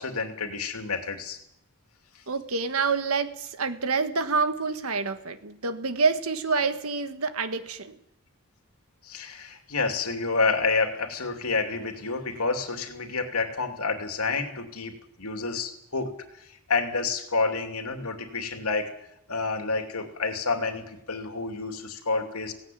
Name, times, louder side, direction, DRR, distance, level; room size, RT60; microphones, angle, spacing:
voice 1, 0.0-1.4 9.0-16.1 16.4-18.9 19.3-22.5, left 4 dB, 90° left, 6 dB, 2.8 m, -29 dB
voice 2, 2.3-8.0, right 4 dB, 75° right, 10 dB, 1.6 m, -27 dB
17.0 x 16.5 x 9.3 m, 0.79 s
head